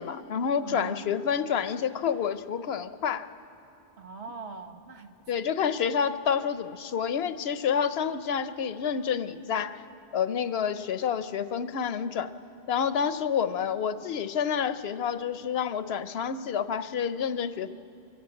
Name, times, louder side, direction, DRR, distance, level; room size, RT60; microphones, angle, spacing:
voice 1, 0.0-3.3 5.3-9.8 10.1-12.3 12.7-17.7, left 7 dB, 70° left, 12 dB, 0.9 m, -28 dB
voice 2, 0.6-1.3 4.0-5.1, right 5 dB, 85° right, 5 dB, 1.5 m, -41 dB
24.5 x 15.0 x 7.8 m, 2.8 s
omnidirectional pair, 1.1 m